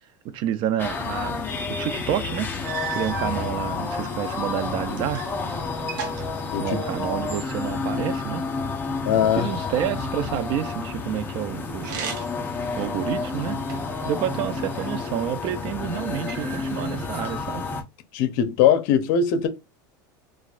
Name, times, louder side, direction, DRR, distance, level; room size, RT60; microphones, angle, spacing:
voice 1, 0.2-5.2 6.6-8.4 9.4-11.9 12.7-13.6 14.0-17.7, right 11 dB, 50° right, 0.5 m, -29 dB
sound 1, 0.8-17.8, left 4 dB, 20° left, 0.7 m, -30 dB
sound 2, 2.6-3.4 4.2-5.4 5.7-7.2 11.7-12.5 13.0-14.0 14.8-15.6 16.3-17.0, right 8 dB, 80° right, 0.8 m, -36 dB
voice 2, 9.1-9.5 18.1-19.5, left 8 dB, 65° left, 0.7 m, -20 dB
4.0 x 2.4 x 2.4 m
supercardioid pair, 120°, 11 cm